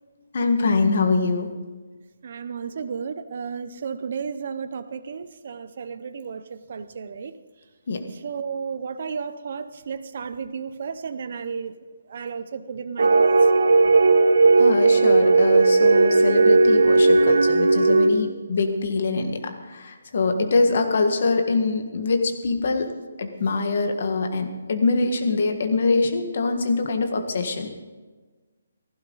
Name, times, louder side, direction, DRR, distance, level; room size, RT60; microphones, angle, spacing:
voice 1, 0.3-1.5 7.9-8.0 14.6-22.9 23.2-27.7, left 3 dB, 45° left, 5 dB, 1.6 m, -24 dB
voice 2, 2.2-7.3 8.2-11.7 12.1-13.3, right 6 dB, 40° right, 12 dB, 0.6 m, -33 dB
sound 1, 13.0-18.1, right 3 dB, 80° right, 1.2 m, -16 dB
16.0 x 15.0 x 4.0 m, 1.3 s
hypercardioid pair, 175°, 0 cm